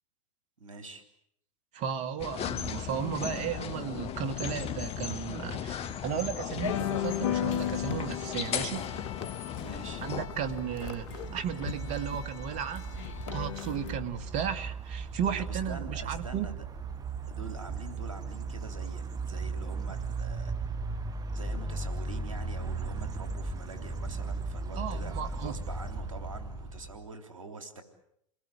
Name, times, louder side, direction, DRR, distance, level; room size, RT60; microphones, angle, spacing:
voice 1, 0.6-1.0 9.6-10.1 15.4-16.7 17.3-20.7 21.3-27.8, right 3 dB, 85° right, 3.6 m, -45 dB
voice 2, 1.7-8.9 10.0-16.5 24.8-25.5, right 8 dB, 45° right, 2.4 m, -35 dB
sound 1, 2.2-10.3, left 8 dB, 35° left, 1.6 m, -36 dB
sound 2, 6.6-13.9, left 10 dB, 65° left, 1.4 m, -36 dB
sound 3, 9.5-27.1, right 3 dB, 20° right, 1.8 m, -37 dB
29.0 x 20.5 x 8.9 m
hypercardioid pair, 85°, 17 cm